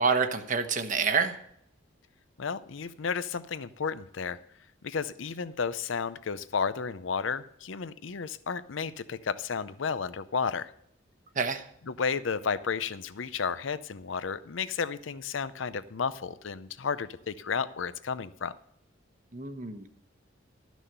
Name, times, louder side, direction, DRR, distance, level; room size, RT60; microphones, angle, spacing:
voice 1, 0.0-1.3 11.4-11.6 19.3-19.8, right 5 dB, 40° right, 1.1 m, -27 dB
voice 2, 2.4-4.4 4.8-10.7 11.8-18.5, left 5 dB, 75° left, 0.6 m, -32 dB
13.0 x 6.2 x 6.8 m
head